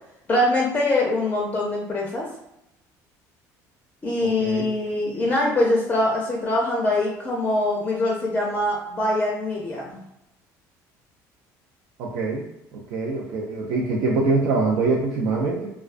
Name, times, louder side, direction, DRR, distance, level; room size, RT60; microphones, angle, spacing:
voice 1, 0.3-2.3 4.0-10.0, left 1 dB, 20° left, -3 dB, 0.4 m, -23 dB
voice 2, 4.2-4.7 12.0-12.4 12.7-15.7, right 3 dB, 75° right, -2 dB, 0.4 m, -24 dB
2.3 x 2.2 x 2.4 m, 0.86 s
cardioid pair, 135°, 7 cm